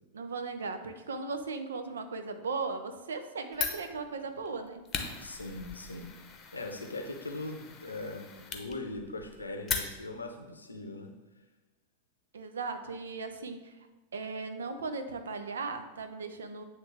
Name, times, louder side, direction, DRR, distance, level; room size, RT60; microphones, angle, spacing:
voice 1, 0.1-4.8 12.3-13.8 14.1-16.6, right 4 dB, 70° right, 8 dB, 0.6 m, -37 dB
Fire, 3.5-10.3, left 6 dB, 25° left, 0.8 m, -39 dB
voice 2, 5.2-6.1 6.5-11.1, left 2 dB, 80° left, 4 dB, 0.7 m, -40 dB
9.0 x 3.2 x 3.3 m, 1.1 s
figure-of-eight pair, 90°, 0 cm